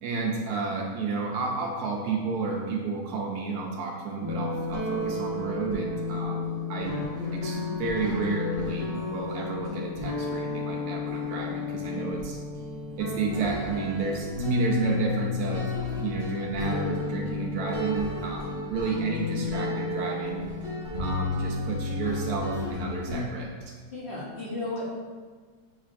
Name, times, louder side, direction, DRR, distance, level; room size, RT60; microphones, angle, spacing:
voice 1, 0.0-7.0 7.3-12.4 13.0-15.7 16.0-20.5 21.0-23.7, right 4 dB, 70° right, 0 dB, 1.0 m, -31 dB
sound 1, 4.2-23.2, left 3 dB, 15° right, 0.6 m, -32 dB
voice 2, 23.9-24.9, left 2 dB, 50° left, -7 dB, 0.8 m, -34 dB
6.5 x 3.2 x 2.4 m, 1.5 s
omnidirectional pair, 1.8 m